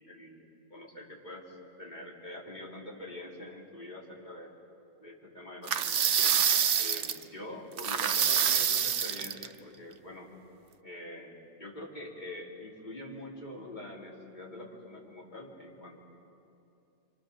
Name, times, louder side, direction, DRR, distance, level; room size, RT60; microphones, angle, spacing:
voice 1, 0.1-0.4 0.7-4.5 5.0-6.3 6.8-10.3 10.8-16.0, left 1 dB, 35° left, -3 dB, 3.9 m, -45 dB
sound 1, 5.7-7.2 7.8-9.5, right 8 dB, 65° right, 1.1 m, -26 dB
28.5 x 25.0 x 7.0 m, 2.7 s
omnidirectional pair, 1.4 m